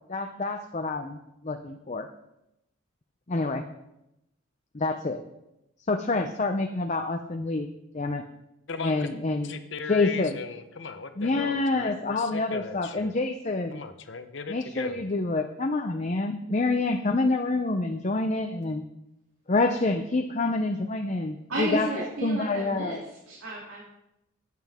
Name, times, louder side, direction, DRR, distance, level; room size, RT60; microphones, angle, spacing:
voice 1, 0.1-2.1 3.3-3.7 4.7-5.2 5.9-7.7 7.9-8.2 8.8-9.5 9.9-10.4 11.2-13.8 14.5-18.8 19.5-21.9 22.2-23.0, left 3 dB, 35° left, 5 dB, 0.6 m, -27 dB
voice 2, 8.7-9.1 9.4-13.1 13.7-15.0, left 4 dB, 60° left, 9 dB, 0.8 m, -38 dB
voice 3, 21.5-23.8, right 1 dB, 85° right, -6 dB, 2.9 m, -32 dB
13.0 x 9.3 x 3.6 m, 0.86 s
head